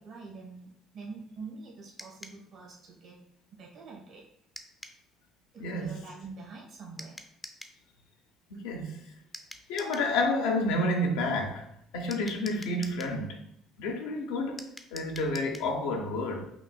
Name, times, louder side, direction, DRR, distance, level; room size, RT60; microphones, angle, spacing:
voice 1, 0.0-3.3 3.5-4.2 5.5-7.2, right 4 dB, 65° right, 1.5 m, -45 dB
sound 1, 2.0-2.4 4.6-5.0 7.0-7.8 9.3-10.1 12.1-13.2 14.6-15.7, left 1 dB, 15° left, 0.5 m, -46 dB
voice 2, 5.6-6.0 8.5-9.0 9.7-11.7 11.9-13.4 13.8-14.6 14.9-16.5, left 2 dB, 85° left, 0.6 m, -30 dB
5.9 x 2.6 x 2.3 m
supercardioid pair, 65°, 0 cm